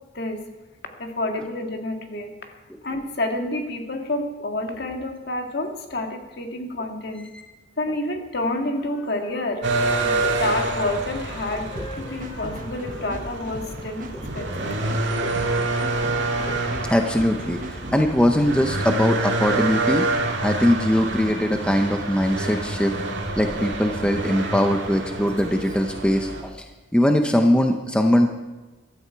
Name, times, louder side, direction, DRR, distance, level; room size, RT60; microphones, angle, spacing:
voice 1, 1.0-7.3 7.8-9.6 10.0-14.1 14.3-14.8, left 2 dB, 55° left, 3 dB, 1.8 m, -29 dB
sound 1, 8.5-13.6, equal, 35° left, 1.9 m, -42 dB
sound 2, 9.6-26.4, right 2 dB, 65° right, 2.2 m, -27 dB
sound 3, 11.7-19.0, right 1 dB, 45° right, 1.1 m, -39 dB
voice 2, 16.5-20.1 20.4-22.9 23.4-26.7 26.9-28.3, equal, 5° left, 4 dB, 0.7 m, -21 dB
15.5 x 13.0 x 4.6 m, 1.2 s
head